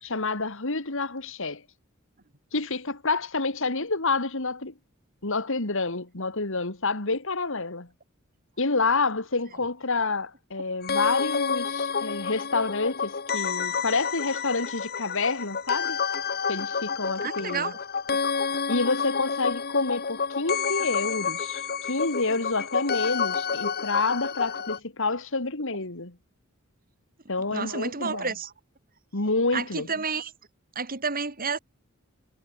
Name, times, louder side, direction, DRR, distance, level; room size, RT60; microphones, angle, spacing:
voice 1, 0.0-1.6 2.5-4.7 5.2-7.9 8.6-16.0 16.5-17.7 18.7-26.2 27.3-28.3 29.1-29.9, left 3 dB, 65° left, 2.9 m, -28 dB
sound 1, 10.8-24.8, left 6 dB, 50° left, 1.9 m, -29 dB
voice 2, 17.2-17.8 27.5-28.5 29.5-30.3 30.8-31.6, right 5 dB, 45° right, 3.9 m, -30 dB
head